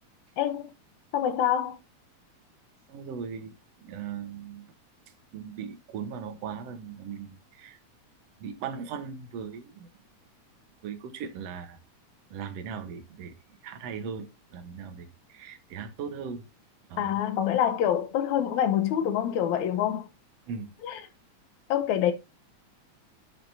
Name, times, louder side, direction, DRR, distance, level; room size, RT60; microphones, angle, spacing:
voice 1, 0.4-0.7 1.1-1.8 17.0-20.1 20.8-21.0 21.7-22.1, left 10 dB, 80° left, 2.3 m, -26 dB
voice 2, 2.9-3.5 3.8-4.7 5.3-7.8 8.4-9.9 10.8-11.8 12.3-13.3 13.6-16.4 16.9-17.1 20.5-20.7, right 6 dB, 65° right, 2.1 m, -38 dB
11.0 x 6.8 x 2.7 m
omnidirectional pair, 3.3 m